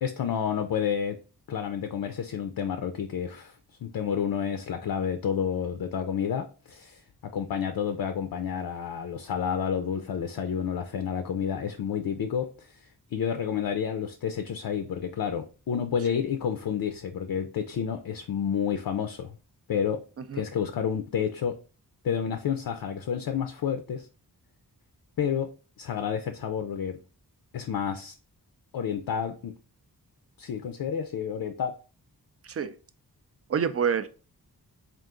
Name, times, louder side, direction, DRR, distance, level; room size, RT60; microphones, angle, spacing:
voice 1, 0.0-1.2 1.5-3.5 3.8-7.0 7.3-12.7 13.1-19.4 19.7-20.0 20.3-21.6 22.0-24.1 25.2-25.5 25.8-27.0 27.5-28.1 28.7-29.5 30.4-31.8, left 8 dB, 65° left, 0.5 m, -30 dB
voice 2, 33.5-34.1, right 7 dB, 40° right, 0.4 m, -26 dB
3.8 x 2.5 x 3.6 m
wide cardioid pair, 85°, 39 cm